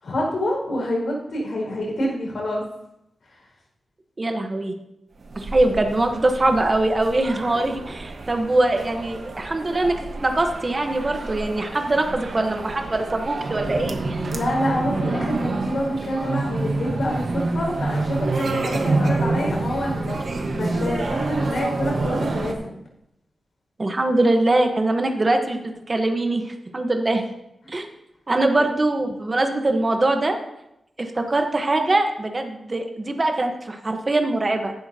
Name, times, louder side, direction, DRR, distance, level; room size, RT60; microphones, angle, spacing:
voice 1, 0.0-2.6 3.3-3.4 14.3-22.8 27.6-27.7, equal, 65° left, -2 dB, 5.2 m, -27 dB
voice 2, 4.2-4.7 5.3-14.2 23.8-27.3 27.7-27.9 28.3-30.4 31.0-34.7, right 2 dB, 25° right, 4 dB, 1.0 m, -22 dB
sound 1, 5.2-22.5, right 3 dB, 55° right, 1.3 m, -28 dB
15.0 x 11.5 x 2.8 m, 0.83 s
wide cardioid pair, 170°, 0 cm